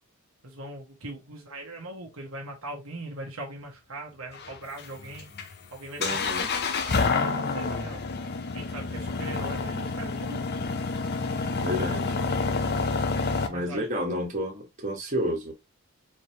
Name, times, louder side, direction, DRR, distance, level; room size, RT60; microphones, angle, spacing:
voice 1, 0.4-5.3 5.7-6.2 6.7-8.0 8.5-10.7 11.2-11.5 13.4-13.9, right 2 dB, 80° right, 1.2 m, -41 dB
sound 1, 4.3-13.5, left 4 dB, 50° left, 0.6 m, -28 dB
voice 2, 6.0-6.5 11.6-12.1 13.5-15.5, equal, 35° right, 1.6 m, -30 dB
4.4 x 3.3 x 2.8 m
head